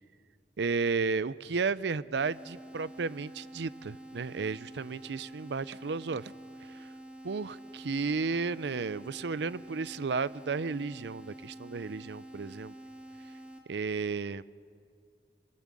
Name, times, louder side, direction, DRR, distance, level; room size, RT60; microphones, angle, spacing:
voice 1, 0.6-6.3 6.7-6.8 7.2-7.5 7.8-12.7 13.7-14.4, right 4 dB, 75° right, 18 dB, 0.5 m, -33 dB
sound 1, 2.2-13.6, right 1 dB, 5° right, 2.5 m, -48 dB
25.5 x 19.0 x 7.5 m, 2.3 s
head